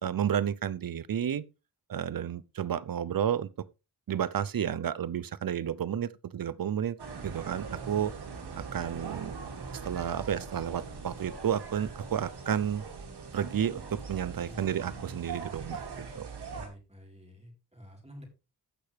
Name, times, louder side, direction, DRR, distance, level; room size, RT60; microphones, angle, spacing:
voice 1, 0.0-1.4 1.9-3.5 4.1-7.0 7.2-8.1 8.6-9.3 9.8-12.8 13.3-16.3, right 9 dB, 55° right, 0.7 m, -31 dB
sound 1, 7.0-16.7, right 5 dB, 75° right, 2.6 m, -41 dB
voice 2, 16.5-18.3, equal, 15° right, 4.1 m, -49 dB
15.0 x 5.8 x 3.3 m
cardioid pair, 65°, 40 cm